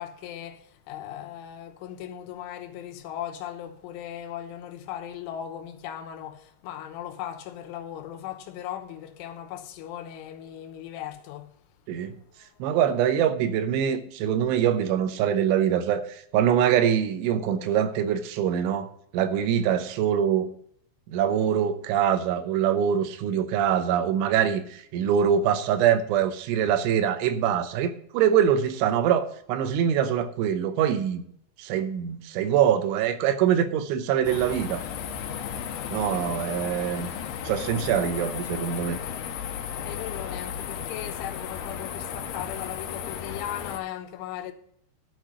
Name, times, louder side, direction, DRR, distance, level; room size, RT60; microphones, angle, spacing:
voice 1, 0.0-11.5 39.8-44.5, left 11 dB, 85° left, 3.5 m, -38 dB
voice 2, 12.6-20.5 21.1-31.2 31.6-34.8 35.9-37.1 37.4-39.0, right 9 dB, 90° right, 3.3 m, -24 dB
sound 1, 34.3-43.8, left 8 dB, 70° left, 2.7 m, -34 dB
12.5 x 6.6 x 5.1 m
omnidirectional pair, 5.3 m